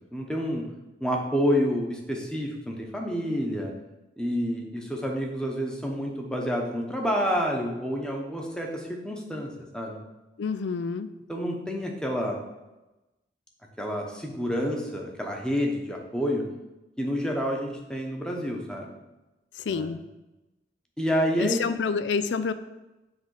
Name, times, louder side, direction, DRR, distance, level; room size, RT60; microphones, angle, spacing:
voice 1, 0.1-0.7 1.0-3.7 4.2-10.0 11.3-12.4 13.8-16.4 17.0-18.9 19.7-19.9 21.0-21.6, equal, 5° left, 1 dB, 1.0 m, -28 dB
voice 2, 10.4-11.1 19.6-20.0 21.4-22.5, left 5 dB, 85° left, 12 dB, 0.4 m, -28 dB
8.0 x 3.4 x 6.4 m, 1.0 s
head